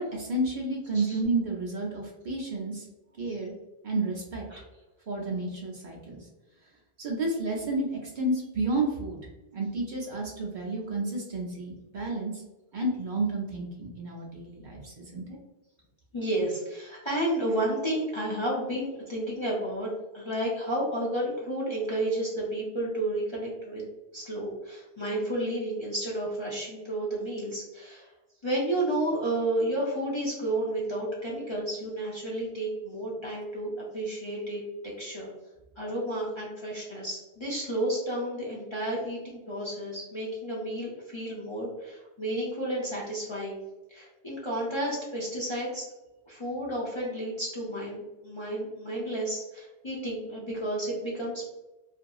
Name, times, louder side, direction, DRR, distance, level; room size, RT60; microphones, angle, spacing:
voice 1, 0.0-2.8 3.1-3.5 3.8-4.4 5.1-6.2 7.0-9.2 9.5-12.3 12.7-15.4, right 2 dB, 50° right, -3 dB, 0.7 m, -31 dB
voice 2, 16.1-23.8 24.1-28.1 28.4-34.6 35.0-35.3 35.8-43.6 43.9-45.8 46.3-51.5, right 1 dB, 35° left, -5 dB, 0.5 m, -31 dB
2.7 x 2.6 x 2.3 m, 1.1 s
omnidirectional pair, 1.1 m